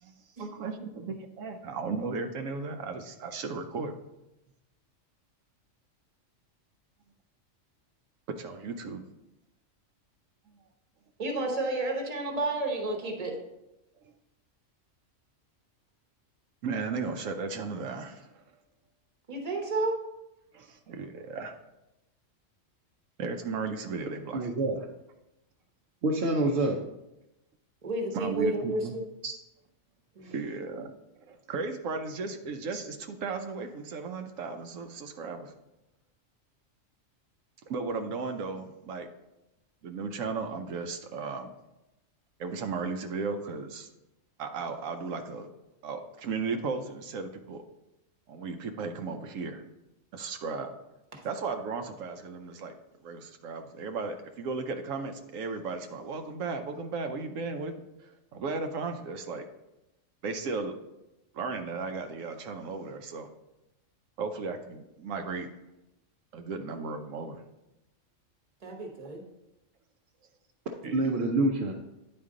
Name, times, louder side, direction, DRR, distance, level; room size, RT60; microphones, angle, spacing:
voice 1, 0.0-3.9 8.3-9.0 10.5-10.6 16.6-18.4 20.5-21.6 23.2-24.5 28.1-29.0 30.3-30.9 31.2-35.5 37.7-39.1 39.8-41.5 42.4-43.9 44.4-45.5 45.8-47.6 48.3-49.6 50.1-50.7 51.2-52.7 53.0-59.4 60.2-60.7 61.3-63.3 64.2-65.5 66.3-67.4 70.8-71.0, right 4 dB, 85° right, 6 dB, 1.0 m, -35 dB
voice 2, 11.2-13.4 19.3-20.0 27.8-29.0 30.2-30.4 51.1-51.2 68.6-69.2, right 2 dB, 30° right, 2 dB, 1.1 m, -31 dB
voice 3, 24.3-24.8 26.0-26.8 29.2-29.3 30.2-30.3 32.7-32.8 70.9-71.7, right 2 dB, 60° right, -1 dB, 0.8 m, -27 dB
9.5 x 4.4 x 3.7 m, 0.93 s
omnidirectional pair, 1.3 m